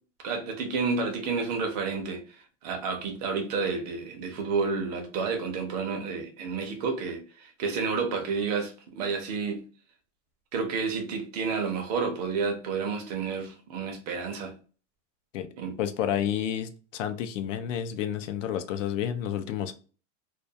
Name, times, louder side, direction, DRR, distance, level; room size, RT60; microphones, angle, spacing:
voice 1, 0.2-2.2 2.6-9.6 10.5-14.5 15.6-15.7, right 5 dB, 35° right, 0.4 m, -30 dB
voice 2, 15.8-19.7, left 10 dB, 80° left, 0.5 m, -30 dB
2.3 x 2.2 x 2.6 m
supercardioid pair, 165°, 37 cm